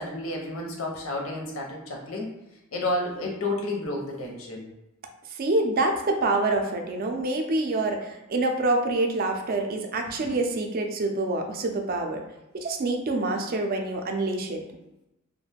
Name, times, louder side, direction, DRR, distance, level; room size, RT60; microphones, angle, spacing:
voice 1, 0.0-2.3 2.7-4.7 10.2-10.3, left 2 dB, 90° left, 0 dB, 0.6 m, -31 dB
voice 2, 5.4-12.2 12.5-14.6, right 2 dB, 45° right, 4 dB, 0.4 m, -26 dB
2.3 x 2.1 x 3.3 m, 0.91 s
head